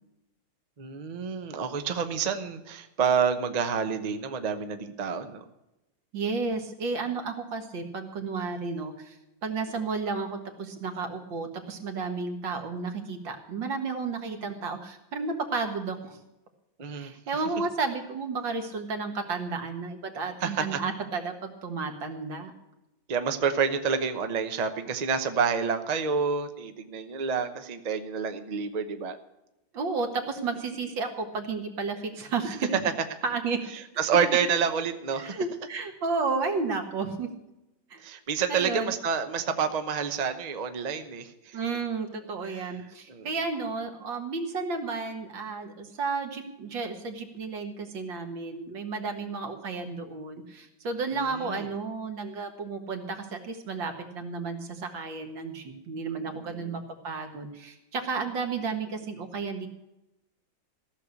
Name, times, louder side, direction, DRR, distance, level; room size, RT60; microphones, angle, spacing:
voice 1, 0.8-5.4 16.8-17.1 20.4-20.8 23.1-29.2 34.0-35.4 38.0-41.6 42.5-42.8 43.1-43.4 51.4-51.7 56.3-56.8, right 6 dB, 35° right, 8 dB, 0.7 m, -28 dB
voice 2, 6.1-9.2 9.4-16.2 16.9-22.5 29.7-32.7 33.2-33.6 35.2-37.3 37.9-38.0 38.5-39.0 41.5-59.7, right 4 dB, 90° right, 5 dB, 2.3 m, -32 dB
15.0 x 6.6 x 8.3 m, 0.93 s
omnidirectional pair, 2.0 m